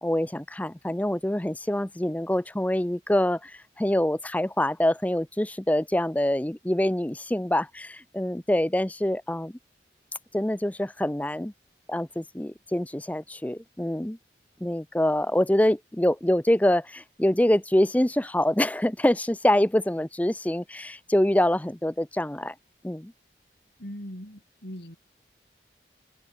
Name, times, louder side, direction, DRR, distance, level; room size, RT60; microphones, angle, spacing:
voice 1, 0.0-9.5 10.3-11.5 11.9-14.2 14.6-22.5 22.8-23.1, left 1 dB, 10° left, 0.5 m, -25 dB
voice 2, 23.8-25.0, equal, 70° left, 7.7 m, -40 dB
head